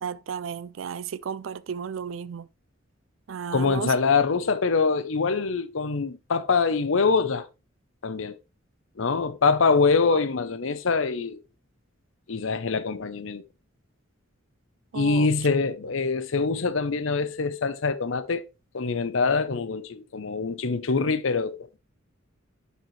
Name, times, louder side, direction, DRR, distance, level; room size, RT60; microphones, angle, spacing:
voice 1, 0.0-2.5 3.3-3.9 14.9-15.3, right 7 dB, 75° right, 0.4 m, -33 dB
voice 2, 3.5-7.5 8.0-8.4 9.0-11.4 12.3-13.4 14.9-18.4 18.7-21.8, left 4 dB, 75° left, 0.7 m, -24 dB
10.5 x 4.2 x 3.2 m
head